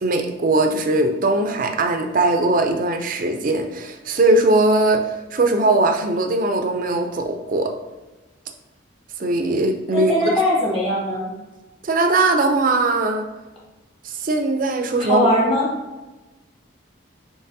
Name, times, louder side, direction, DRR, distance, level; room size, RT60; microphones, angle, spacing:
voice 1, 0.0-7.7 9.2-10.3 11.8-13.2 14.0-15.3, right 2 dB, 40° right, 5 dB, 0.4 m, -20 dB
voice 2, 9.9-11.3 15.0-15.7, left 1 dB, 30° left, -5 dB, 1.5 m, -20 dB
6.5 x 2.9 x 2.6 m, 1.1 s
head